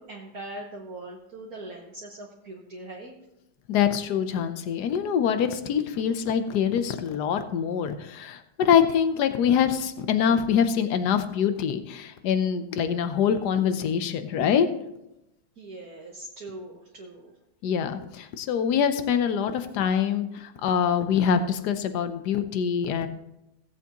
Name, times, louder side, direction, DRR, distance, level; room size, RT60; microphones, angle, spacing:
voice 1, 0.0-3.1 15.6-17.3, right 2 dB, 55° right, -1 dB, 1.4 m, -41 dB
voice 2, 3.7-14.7 17.6-23.1, left 8 dB, 65° left, 9 dB, 1.2 m, -24 dB
16.5 x 8.2 x 3.0 m, 0.88 s
omnidirectional pair, 2.2 m